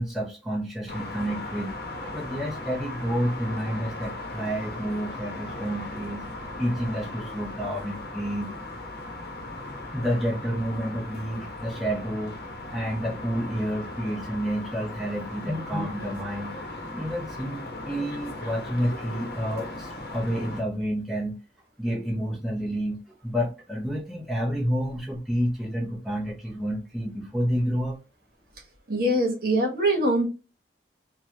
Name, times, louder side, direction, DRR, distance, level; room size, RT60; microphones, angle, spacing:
voice 1, 0.0-1.7 2.1-6.2 6.6-8.5 9.9-12.3 12.7-16.5 16.9-21.4 21.8-28.0, equal, ahead, -4 dB, 0.7 m, -29 dB
sound 1, 0.9-20.6, left 2 dB, 55° left, 0.9 m, -38 dB
voice 2, 28.9-30.3, right 1 dB, 50° right, 0 dB, 1.1 m, -23 dB
3.2 x 2.3 x 2.7 m, 0.29 s
head